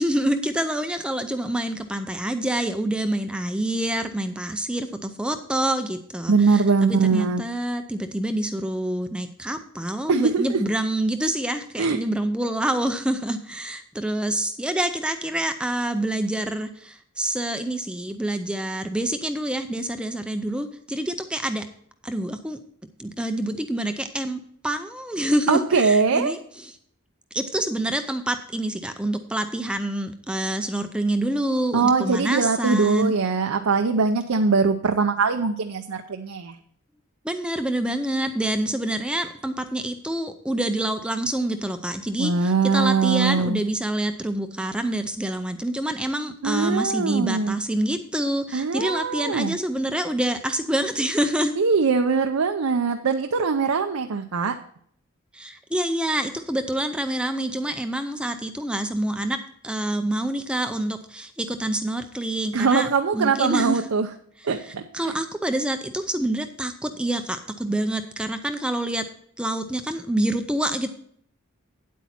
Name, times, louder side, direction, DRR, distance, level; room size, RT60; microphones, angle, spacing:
voice 1, 0.0-21.6 22.0-22.6 23.0-26.8 27.3-33.1 37.2-51.5 55.3-59.4 59.6-62.9 63.1-63.9 64.4-69.1 69.4-70.9, right 1 dB, 5° right, 7 dB, 0.5 m, -27 dB
voice 2, 6.3-7.4 10.1-10.6 11.8-12.0 25.5-26.3 31.7-36.6 42.2-43.6 46.4-47.6 48.5-49.5 51.6-54.6 62.5-64.1 64.4-65.2, right 4 dB, 85° right, 5 dB, 0.6 m, -22 dB
9.4 x 8.3 x 4.3 m, 0.64 s
head